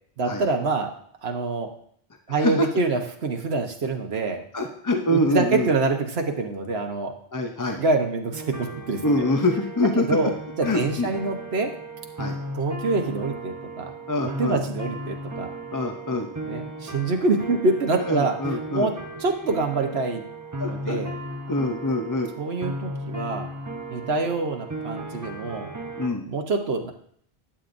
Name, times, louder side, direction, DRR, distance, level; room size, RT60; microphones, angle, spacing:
voice 1, 0.2-0.9 1.2-1.7 2.3-4.4 5.1-7.1 7.8-9.0 9.9-10.3 10.6-11.7 12.5-13.9 14.2-15.5 16.5-18.4 18.7-20.2 20.7-21.1 22.4-23.5 23.9-25.7 26.3-26.9, right 3 dB, 75° right, 4 dB, 1.4 m, -26 dB
voice 2, 2.3-2.7 4.5-5.7 7.3-7.8 9.0-10.1 10.6-11.1 12.2-12.4 14.1-14.6 15.7-16.3 18.1-18.9 20.6-21.0 21.5-22.3 26.0-26.2, left 1 dB, 20° left, 4 dB, 0.6 m, -25 dB
sound 1, 8.3-26.1, right 1 dB, 20° right, 0.9 m, -36 dB
12.0 x 8.5 x 2.6 m, 0.62 s
omnidirectional pair, 1.1 m